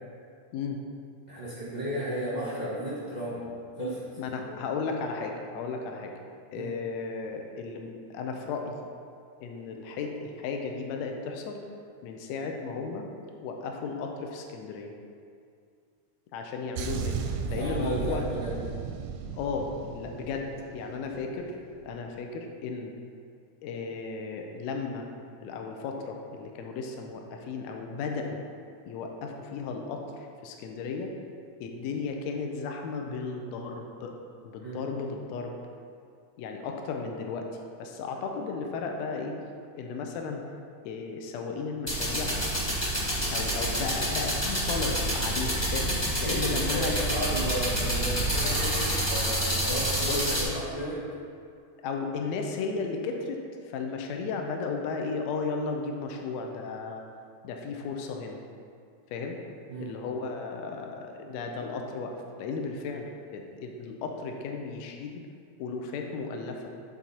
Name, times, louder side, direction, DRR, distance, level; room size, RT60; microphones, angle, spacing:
voice 1, 1.3-3.4 3.8-4.0 4.4-4.5 6.5-6.7 17.5-18.6 34.6-34.8 46.2-51.0 59.7-59.9, equal, 35° right, -8 dB, 0.7 m, -34 dB
voice 2, 4.2-6.1 6.5-8.8 9.4-11.6 12.0-13.1 13.4-14.9 16.3-17.2 17.5-18.3 19.3-21.6 21.8-22.9 23.6-25.1 25.4-28.4 28.9-31.1 31.6-34.1 34.4-35.5 36.4-37.5 37.8-39.4 39.7-40.4 40.8-42.4 43.3-46.9 50.0-50.2 51.8-57.0 57.4-58.4 59.1-59.4 59.8-65.2 65.6-66.6, left 4 dB, 80° left, 3 dB, 1.8 m, -34 dB
sound 1, 16.8-21.3 21.6-21.9, right 6 dB, 80° right, 1.8 m, -35 dB
sound 2, 41.9-50.4, right 1 dB, 15° left, 0.8 m, -28 dB
10.5 x 4.0 x 4.2 m, 2.3 s
omnidirectional pair, 3.3 m